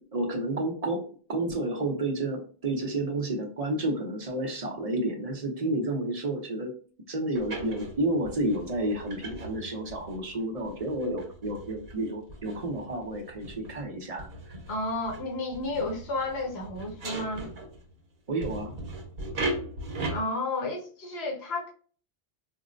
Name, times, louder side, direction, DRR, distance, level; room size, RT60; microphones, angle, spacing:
voice 1, 0.1-6.7 7.1-14.5 18.3-18.8, right 1 dB, 40° right, 2 dB, 0.7 m, -31 dB
sound 1, 7.3-18.0 18.4-20.2, right 2 dB, 70° right, 1.1 m, -39 dB
voice 2, 14.7-17.5 20.1-21.7, left 2 dB, 85° left, 0 dB, 1.1 m, -32 dB
4.3 x 2.1 x 2.5 m, 0.42 s
omnidirectional pair, 1.1 m